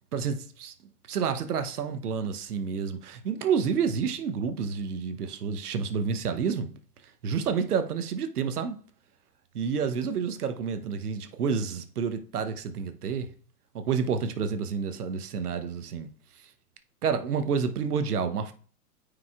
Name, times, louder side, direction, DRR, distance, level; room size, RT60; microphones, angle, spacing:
voice 1, 0.1-0.7 1.1-6.8 7.2-8.8 9.5-13.3 13.7-16.1 17.0-18.5, right 6 dB, 75° right, 1.0 m, -29 dB
9.3 x 5.0 x 2.4 m
figure-of-eight pair, 105°, 46 cm